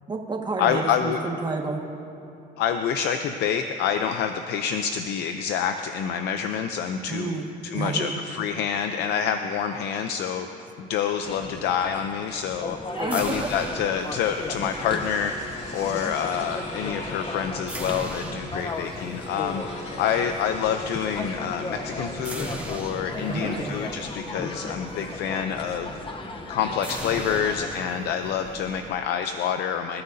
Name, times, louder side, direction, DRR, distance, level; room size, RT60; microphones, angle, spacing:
voice 1, 0.1-1.8 7.1-8.1 12.9-13.5 23.3-23.7, right 4 dB, 25° right, 1 dB, 1.8 m, -30 dB
voice 2, 0.6-1.2 2.6-10.5 10.8-12.8 13.1-15.3 15.7-25.9 26.5-30.0, left 8 dB, 80° left, 7 dB, 0.7 m, -27 dB
sound 1, 11.2-27.8, left 3 dB, 30° left, 0.9 m, -37 dB
sound 2, 13.0-28.9, right 1 dB, 10° right, 2.5 m, -39 dB
sound 3, 13.5-25.0, left 1 dB, 45° left, 4.2 m, -43 dB
27.0 x 14.0 x 2.8 m, 2.8 s
cardioid pair, 110°, 17 cm